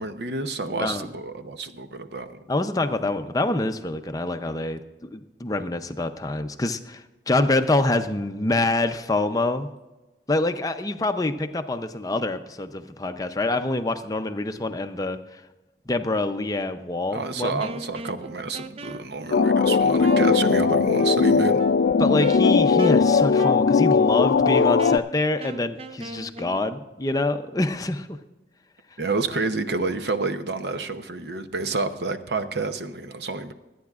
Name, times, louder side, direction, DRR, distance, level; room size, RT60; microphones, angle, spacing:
voice 1, 0.0-2.4 17.1-21.6 29.0-33.5, right 3 dB, 70° right, 8 dB, 0.8 m, -29 dB
voice 2, 2.5-9.7 10.3-15.4 15.9-17.6 22.0-28.2, left 2 dB, 20° left, 8 dB, 0.5 m, -26 dB
Wind instrument woodwind instrument, 17.6-26.6, right 2 dB, 35° right, 0.4 m, -38 dB
sound 1, 19.3-25.0, left 5 dB, 70° left, 0.4 m, -19 dB
25.0 x 9.4 x 2.4 m, 1.1 s
head